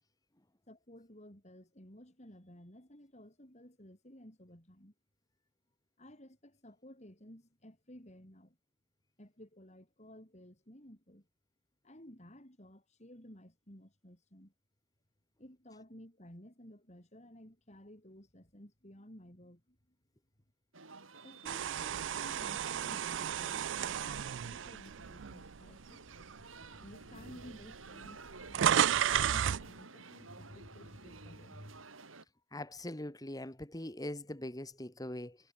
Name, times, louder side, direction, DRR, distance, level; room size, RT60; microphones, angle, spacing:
voice 1, 0.7-4.9 6.0-8.6 9.2-11.3 11.8-14.5 15.4-19.8 21.2-31.9, equal, 35° left, 6.9 m, -54 dB
sound 1, 20.7-32.2, right 4 dB, 85° right, 4.5 m, -53 dB
sound 2, 21.4-25.7 26.2-26.4 27.3-27.4 27.6-29.7, right 9 dB, 65° right, 0.4 m, -32 dB
voice 2, 32.5-35.4, left 1 dB, 20° left, 1.9 m, -42 dB
head